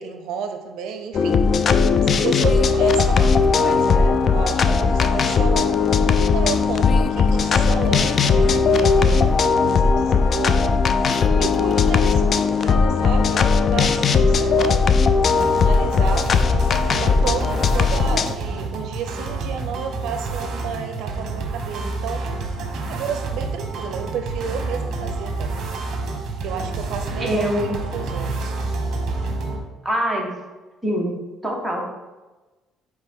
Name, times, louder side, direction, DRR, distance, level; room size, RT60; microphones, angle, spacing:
voice 1, 0.0-1.4 2.0-10.7 11.4-16.3 16.9-22.3 22.8-25.5 26.4-28.5, right 6 dB, 75° right, 6 dB, 0.5 m, -32 dB
sound 1, 1.1-18.3, left 5 dB, 35° left, 0.3 m, -18 dB
sound 2, 15.3-29.6, right 3 dB, 55° right, 1.0 m, -29 dB
voice 2, 27.2-27.8 29.8-30.4 30.8-31.1 31.4-31.9, equal, ahead, -3 dB, 1.1 m, -24 dB
9.0 x 3.2 x 3.6 m, 1.2 s
cardioid pair, 150°, 0 cm